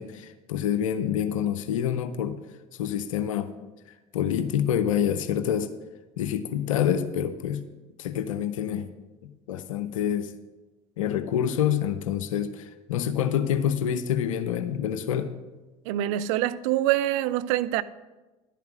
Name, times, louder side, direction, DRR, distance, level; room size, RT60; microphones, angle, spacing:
voice 1, 0.0-2.4 2.7-3.5 3.9-5.7 6.2-7.6 8.0-8.9 9.5-10.3 11.0-15.3, left 9 dB, 90° left, 0.5 m, -27 dB
voice 2, 15.9-17.8, right 13 dB, 75° right, 0.4 m, -25 dB
11.0 x 5.8 x 6.0 m
hypercardioid pair, 70°, 16 cm